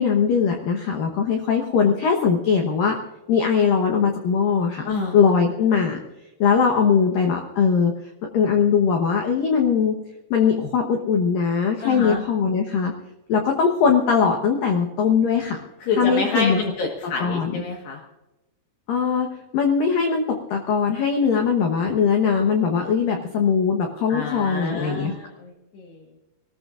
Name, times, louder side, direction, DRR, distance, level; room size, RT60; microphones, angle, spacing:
voice 1, 0.0-3.0 3.3-4.9 5.1-6.0 6.4-7.9 8.3-10.0 10.3-12.9 13.3-15.6 15.9-16.6 17.2-17.6 18.9-19.3 19.5-25.1, left 6 dB, 85° left, 2 dB, 1.9 m, -20 dB
voice 2, 4.8-5.2 11.8-12.2 15.8-18.0 24.1-26.0, left 3 dB, 65° left, 0 dB, 3.2 m, -28 dB
24.0 x 19.0 x 2.5 m, 0.99 s
omnidirectional pair, 5.8 m